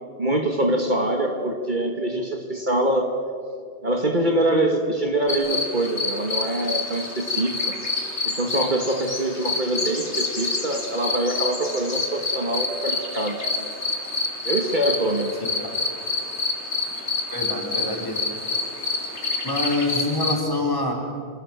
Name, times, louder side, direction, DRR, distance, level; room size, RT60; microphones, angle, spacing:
voice 1, 0.2-3.2 3.8-7.8 8.3-13.4 14.5-15.4, right 1 dB, 45° right, 4 dB, 2.0 m, -24 dB
sound 1, 5.3-20.4, left 3 dB, 85° left, 3.8 m, -28 dB
voice 2, 17.3-18.2 19.4-20.9, left 2 dB, 20° left, 0 dB, 5.0 m, -25 dB
29.0 x 27.0 x 7.5 m, 2.5 s
omnidirectional pair, 1.1 m